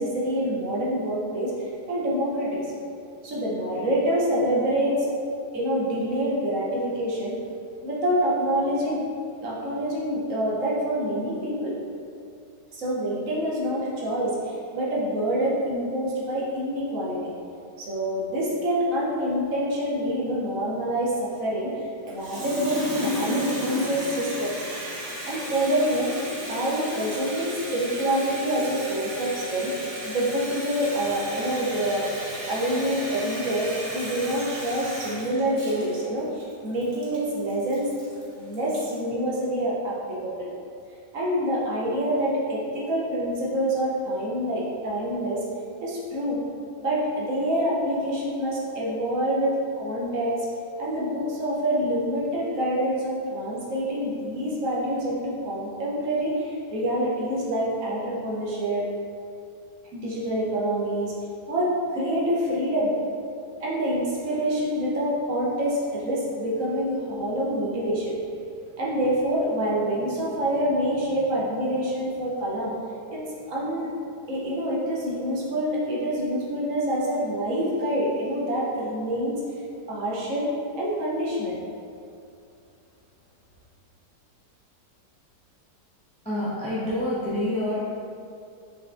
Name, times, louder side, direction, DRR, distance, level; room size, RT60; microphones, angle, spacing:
voice 1, 0.0-1.5 1.9-2.7 3.2-5.1 5.5-7.3 7.8-9.1 9.4-11.7 12.7-17.2 17.8-21.7 22.0-24.5 25.3-26.1 26.5-29.7 30.0-32.0 32.5-37.9 38.4-40.5 41.1-45.4 45.8-46.4 46.8-50.5 50.8-58.9 59.9-61.1 61.5-62.9 63.6-68.1 68.8-72.7 73.1-73.2 73.5-73.9 74.3-79.4 79.9-80.5 80.7-81.6, right 1 dB, 60° right, -5 dB, 1.1 m, -26 dB
Water tap faucet, 22.1-39.0, equal, 40° right, 0.6 m, -34 dB
voice 2, 86.2-87.8, left 1 dB, 5° left, -11 dB, 0.9 m, -27 dB
5.7 x 3.2 x 2.5 m, 2.4 s
omnidirectional pair, 1.8 m